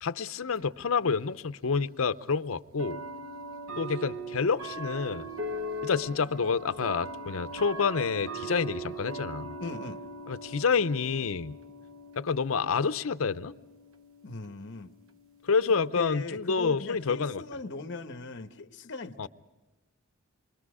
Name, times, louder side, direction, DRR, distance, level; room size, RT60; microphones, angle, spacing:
voice 1, 0.0-3.0 3.8-5.3 5.8-9.5 10.3-11.6 12.2-13.5 15.5-17.4 19.2-19.3, left 5 dB, 75° left, 0.6 m, -28 dB
sound 1, 0.6-0.7 1.8-1.9 2.8-16.0, right 1 dB, 75° right, 1.0 m, -40 dB
voice 2, 9.6-10.0 14.2-14.9 15.7-19.3, left 3 dB, 60° left, 1.0 m, -39 dB
27.5 x 23.5 x 4.9 m
head